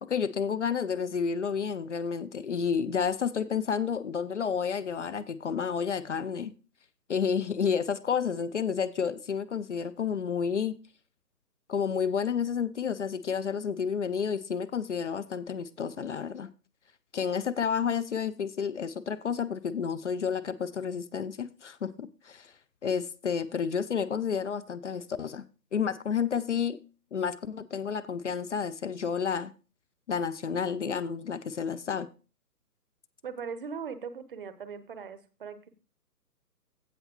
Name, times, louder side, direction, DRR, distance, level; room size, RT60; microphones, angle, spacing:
voice 1, 0.0-6.5 7.1-10.7 11.7-16.5 17.1-22.5 22.8-25.4 25.7-26.8 27.1-29.5 30.1-32.1, left 6 dB, 50° left, 0.6 m, -30 dB
voice 2, 33.2-35.7, right 6 dB, 35° right, 0.9 m, -39 dB
16.5 x 5.5 x 3.0 m
figure-of-eight pair, 140°, 48 cm